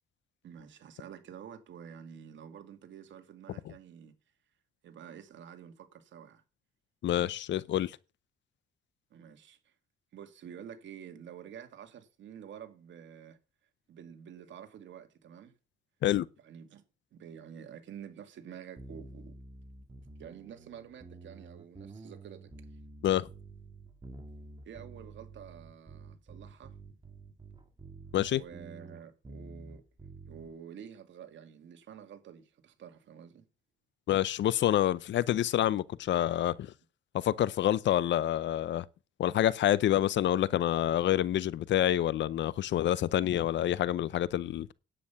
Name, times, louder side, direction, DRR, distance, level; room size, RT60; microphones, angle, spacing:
voice 1, 0.4-4.1 4.8-6.4 9.1-9.7 10.1-13.4 13.9-15.5 16.4-16.8 17.1-19.4 20.2-22.5 24.6-26.8 28.3-29.8 30.3-33.5, right 8 dB, 70° right, 2.4 m, -49 dB
voice 2, 7.0-8.0 16.0-16.3 23.0-23.3 28.1-28.4 34.1-36.7 37.1-38.8 39.2-44.7, left 12 dB, 65° left, 0.7 m, -27 dB
sound 1, 18.8-30.6, right 3 dB, 25° right, 2.2 m, -49 dB
10.0 x 8.7 x 5.8 m
cardioid pair, 90°, 20 cm